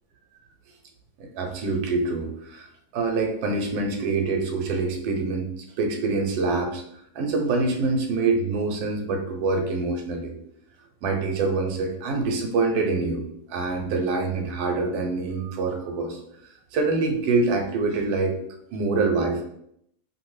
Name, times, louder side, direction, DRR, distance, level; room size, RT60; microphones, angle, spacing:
voice 1, 1.2-2.7 2.9-5.5 5.8-6.8 7.1-10.3 11.0-13.2 13.5-16.2 16.7-18.4 18.7-19.4, right 3 dB, 80° right, 3 dB, 1.1 m, -25 dB
2.7 x 2.5 x 3.1 m, 0.73 s
omnidirectional pair, 1.7 m